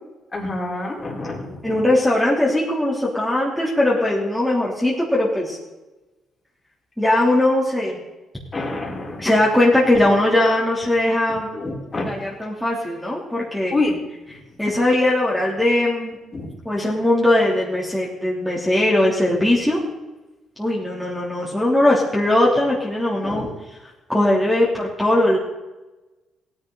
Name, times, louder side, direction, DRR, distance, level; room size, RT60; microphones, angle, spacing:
voice 1, 0.3-1.8 8.5-9.3 9.9-10.2 11.3-12.1 13.7-14.0 16.3-16.5 23.2-23.5, left 2 dB, 30° left, -1 dB, 4.1 m, -27 dB
voice 2, 1.6-5.6 7.0-8.0 9.2-11.5 11.9-13.7 14.6-16.2 16.6-19.8 20.6-23.5 24.1-25.4, left 1 dB, 5° left, -6 dB, 3.3 m, -19 dB
17.0 x 10.5 x 4.0 m, 1.1 s
cardioid pair, 90°, 0 cm